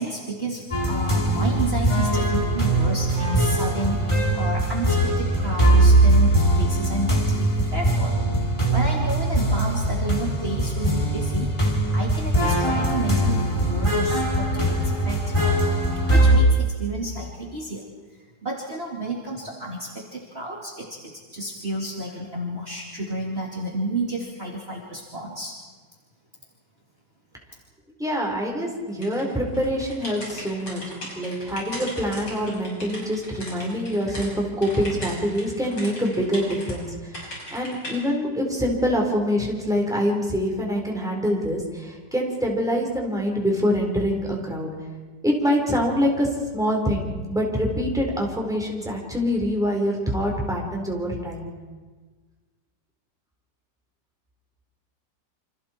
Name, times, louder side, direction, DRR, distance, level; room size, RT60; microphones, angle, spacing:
voice 1, 0.0-8.2 8.7-11.5 11.9-14.8 15.0-15.3 16.1-17.9 18.4-25.6, right 2 dB, 35° right, -2 dB, 2.8 m, -31 dB
sound 1, 0.7-16.4, right 1 dB, 15° left, 3.0 m, -21 dB
voice 2, 28.0-30.8 31.1-44.7 45.2-51.5, equal, ahead, -1 dB, 4.2 m, -25 dB
sound 2, 29.0-34.3 34.6-36.7 37.1-38.0, equal, 80° left, 7.6 m, -38 dB
28.5 x 26.5 x 4.5 m, 1.4 s
omnidirectional pair, 1.9 m